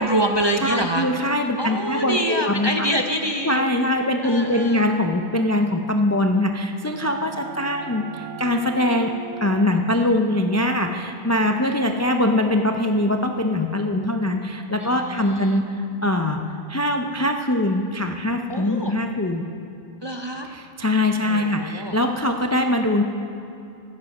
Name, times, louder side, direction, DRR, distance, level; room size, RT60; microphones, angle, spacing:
voice 1, 0.0-1.1 1.6-3.6 4.2-4.8 14.8-15.6 18.5-18.9 20.0-20.5 21.2-22.0, right 1 dB, 35° right, 3 dB, 0.5 m, -25 dB
voice 2, 0.6-2.7 3.4-8.0 8.4-9.1 9.4-15.6 16.0-16.4 16.7-19.4 20.8-23.0, left 1 dB, 25° left, 4 dB, 0.3 m, -22 dB
sound 1, 6.6-12.1, right 10 dB, 85° right, 0.9 m, -41 dB
14.5 x 9.6 x 5.4 m, 2.8 s
omnidirectional pair, 1.2 m